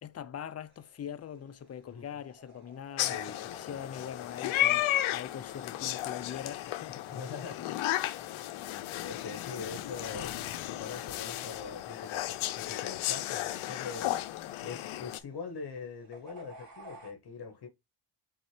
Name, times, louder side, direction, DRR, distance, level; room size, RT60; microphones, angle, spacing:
voice 1, 0.0-7.2 7.6-7.8, left 9 dB, 35° left, 0.5 m, -42 dB
sound 1, 0.6-17.1, right 2 dB, 85° right, 2.5 m, -59 dB
voice 2, 1.9-2.2 3.1-3.8 7.1-7.6 9.0-10.4 10.8-17.7, left 5 dB, 55° left, 1.0 m, -43 dB
sound 2, 3.0-15.2, left 14 dB, 85° left, 0.6 m, -34 dB
4.1 x 3.7 x 3.1 m
cardioid pair, 80°, 46 cm